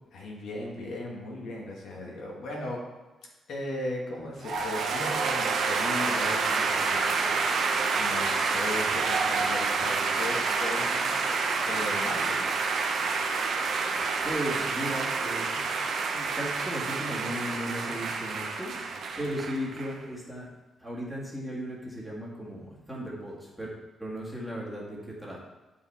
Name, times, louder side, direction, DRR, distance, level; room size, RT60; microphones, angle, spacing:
voice 1, 0.1-2.8 3.5-7.5 8.0-11.3 11.7-12.6, left 2 dB, 65° left, -2 dB, 1.9 m, -37 dB
sound 1, 4.4-19.9, right 4 dB, 60° right, 1.0 m, -28 dB
sound 2, 4.5-9.3, right 4 dB, 45° left, 1.7 m, -45 dB
voice 2, 14.2-15.7 16.1-18.8 19.2-20.5 20.8-23.7 24.0-25.4, equal, ahead, -5 dB, 1.8 m, -36 dB
9.4 x 5.5 x 4.3 m, 1.2 s
wide cardioid pair, 160°, 0 cm